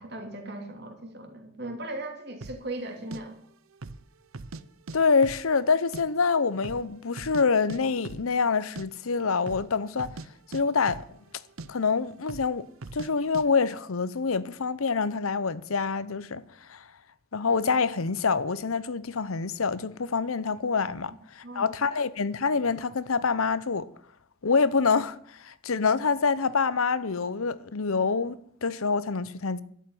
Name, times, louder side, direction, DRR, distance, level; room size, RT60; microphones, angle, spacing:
voice 1, 0.0-3.4 21.4-21.7, right 2 dB, 50° right, 3.0 m, -38 dB
sound 1, 2.4-2.6 3.1-3.2 3.7-4.0 4.3-5.0 5.2-6.0 6.3-6.4 6.6-7.4 7.7-8.3 8.6-8.9 9.4-9.7 10.0-11.3 11.6-11.7 12.3-12.5 12.8-13.1 13.3-13.5, right 3 dB, 85° right, 0.7 m, -40 dB
voice 2, 4.9-10.1 10.5-11.0 11.7-12.7 12.9-16.4 16.7-16.8 17.3-23.9 24.4-25.2 25.4-29.6, left 5 dB, 85° left, 0.8 m, -26 dB
12.0 x 8.0 x 10.0 m
head